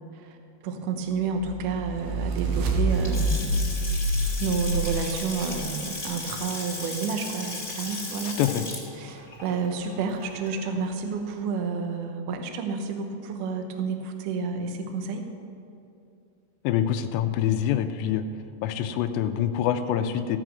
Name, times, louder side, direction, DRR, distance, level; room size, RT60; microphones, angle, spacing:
voice 1, 0.6-3.7 4.4-8.4 8.9-15.3, right 5 dB, 90° right, 5 dB, 1.8 m, -30 dB
sound 1, 1.4-5.6, right 1 dB, 70° right, 2.0 m, -27 dB
Water tap faucet / Sink (filling or washing) / Splash splatter, 2.9-10.9, left 2 dB, 15° left, 1.7 m, -36 dB
voice 2, 16.6-18.2 18.6-20.4, left 10 dB, 80° left, 9 dB, 2.7 m, -25 dB
16.0 x 6.2 x 7.7 m, 2.6 s
omnidirectional pair, 5.3 m